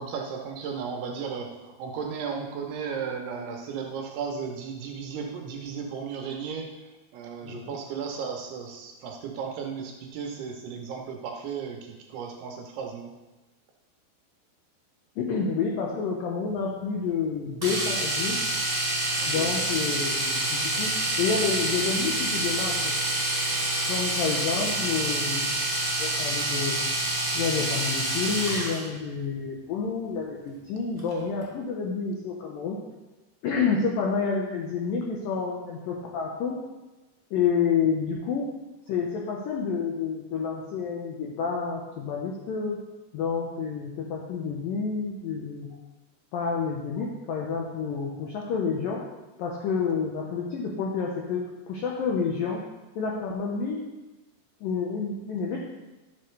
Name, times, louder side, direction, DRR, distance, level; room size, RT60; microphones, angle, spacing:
voice 1, 0.0-6.7 7.1-13.1 19.2-19.5, right 6 dB, 75° right, 1 dB, 2.7 m, -35 dB
voice 2, 7.4-7.8 15.2-18.4 19.3-23.0 23.9-25.5 26.0-26.8 27.3-32.8 33.4-36.6 37.3-38.5 38.9-42.8 43.1-45.7 46.3-49.1 49.4-52.6 53.0-53.9 54.6-55.6, left 5 dB, 75° left, -2 dB, 2.1 m, -29 dB
Domestic sounds home sounds, 17.6-28.8 31.0-31.1 31.4-31.5, right 1 dB, 5° right, 2.2 m, -27 dB
11.5 x 7.5 x 3.2 m, 1.1 s
omnidirectional pair, 5.1 m